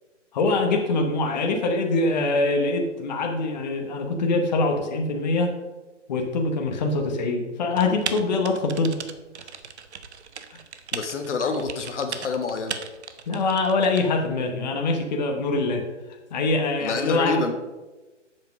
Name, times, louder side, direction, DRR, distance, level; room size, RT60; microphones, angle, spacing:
voice 1, 0.3-5.5 6.1-8.9 10.5-10.6 13.3-15.8 16.3-17.4, left 3 dB, 35° left, 2 dB, 1.0 m, -24 dB
Typing, 7.8-14.0, right 6 dB, 65° right, 0.8 m, -37 dB
voice 2, 10.9-12.8 16.8-17.5, left 4 dB, 70° left, 6 dB, 1.1 m, -27 dB
7.4 x 5.7 x 5.1 m, 1.2 s
hypercardioid pair, 155°, 36 cm